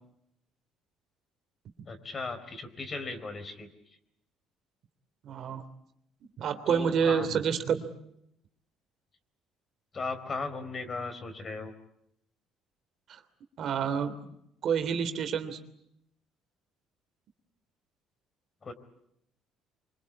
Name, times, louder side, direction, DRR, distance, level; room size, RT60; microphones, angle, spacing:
voice 1, 1.9-3.7 6.7-7.3 9.9-11.7 18.6-18.7, left 3 dB, 30° left, 9 dB, 4.3 m, -37 dB
voice 2, 5.2-5.6 6.4-7.8 13.1-13.2 13.6-14.1 14.6-15.6, right 7 dB, 55° right, 8 dB, 3.1 m, -28 dB
26.0 x 25.0 x 8.5 m, 0.78 s
cardioid pair, 120°, 0 cm